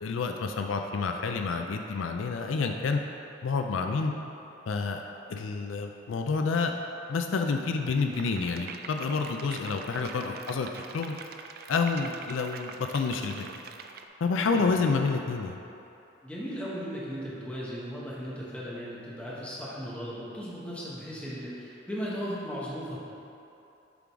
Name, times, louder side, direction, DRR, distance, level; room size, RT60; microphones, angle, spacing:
voice 1, 0.0-3.0 3.4-4.1 4.7-5.0 5.3-6.7 7.1-11.1 11.7-13.5 14.2-15.6, left 4 dB, 80° left, 4 dB, 0.4 m, -29 dB
sound 1, 8.1-14.0, right 6 dB, 50° right, 0.3 m, -45 dB
voice 2, 16.2-23.0, equal, 5° left, -7 dB, 1.2 m, -37 dB
7.0 x 3.8 x 4.7 m, 2.8 s
head